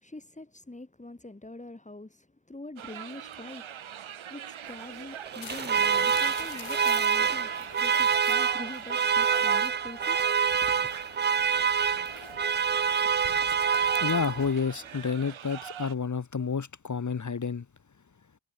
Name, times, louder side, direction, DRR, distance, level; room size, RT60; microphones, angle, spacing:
voice 1, 0.0-10.9, left 2 dB, 15° left, 4.4 m, -45 dB
sound 1, 2.8-15.9, right 9 dB, 80° right, 2.9 m, -44 dB
Alarm, 5.3-14.7, right 6 dB, 25° right, 0.3 m, -26 dB
sound 2, 5.4-14.5, left 9 dB, 80° left, 5.4 m, -47 dB
voice 2, 14.0-17.7, left 5 dB, 35° left, 2.0 m, -30 dB
wide cardioid pair, 110°, 47 cm